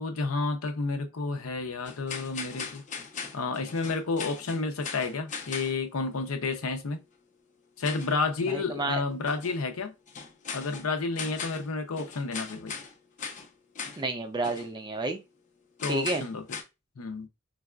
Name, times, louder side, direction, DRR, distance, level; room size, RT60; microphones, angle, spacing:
voice 1, 0.0-2.8 3.3-7.0 7.8-9.9 10.5-12.7 15.8-16.4 17.0-17.3, left 3 dB, 80° left, 0.6 m, -31 dB
sound 1, 1.9-5.8 7.8-8.1 9.3-9.6 10.1-11.7 12.0-12.9 13.2-13.5 13.8-14.0 14.4-14.7 15.8-16.6, left 6 dB, 35° left, 0.5 m, -39 dB
voice 2, 8.5-9.0 14.0-15.2 15.9-16.2, right 3 dB, 20° right, 0.4 m, -30 dB
4.0 x 2.4 x 2.2 m
head